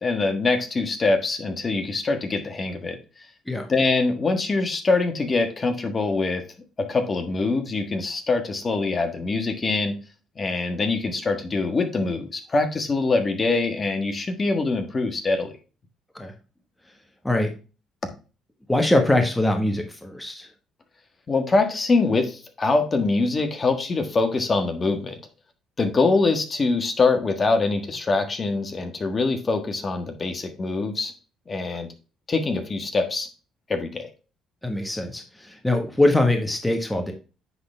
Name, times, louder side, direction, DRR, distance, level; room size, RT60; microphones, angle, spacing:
voice 1, 0.0-3.0 3.7-6.4 6.8-9.9 10.4-15.5 21.3-25.2 25.8-31.1 31.5-31.9 32.3-33.3 33.7-34.1, left 3 dB, 35° left, 6 dB, 1.5 m, -24 dB
voice 2, 18.7-20.5 34.6-37.1, left 1 dB, 10° left, 4 dB, 1.3 m, -22 dB
9.5 x 4.0 x 3.3 m, 0.33 s
supercardioid pair, 80°, 0 cm